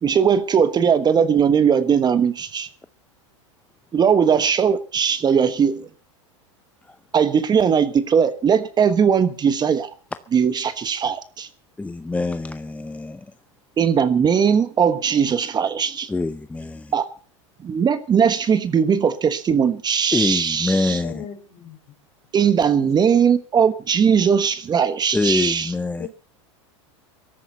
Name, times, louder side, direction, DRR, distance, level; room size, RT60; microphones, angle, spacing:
voice 1, 0.0-2.7 3.9-5.8 7.1-9.9 10.3-11.5 13.8-16.1 16.9-17.0 17.6-21.0 22.3-25.7, right 7 dB, 25° right, 12 dB, 1.3 m, -19 dB
voice 2, 11.8-13.3 16.1-16.9 20.1-21.3 25.1-26.1, left 3 dB, 10° left, 11 dB, 0.7 m, -25 dB
voice 3, 20.9-21.8 22.6-22.9 26.0-26.1, left 9 dB, 40° left, 7 dB, 4.8 m, -37 dB
17.0 x 13.5 x 5.7 m, 0.40 s
hypercardioid pair, 105°, 16 cm